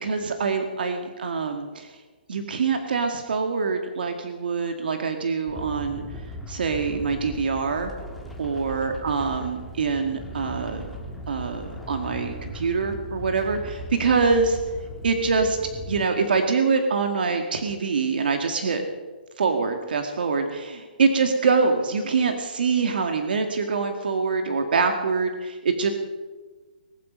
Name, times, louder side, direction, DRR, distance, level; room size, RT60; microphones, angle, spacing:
voice 1, 0.0-1.9 2.3-6.0 6.5-7.9 8.4-10.9 11.3-14.6 15.0-15.6 15.9-18.8 19.4-25.9, right 4 dB, 70° right, 5 dB, 2.0 m, -24 dB
sound 1, 5.5-16.1, left 1 dB, ahead, 1.5 m, -38 dB
20.0 x 12.0 x 5.3 m, 1.3 s
hypercardioid pair, 165°, 5 cm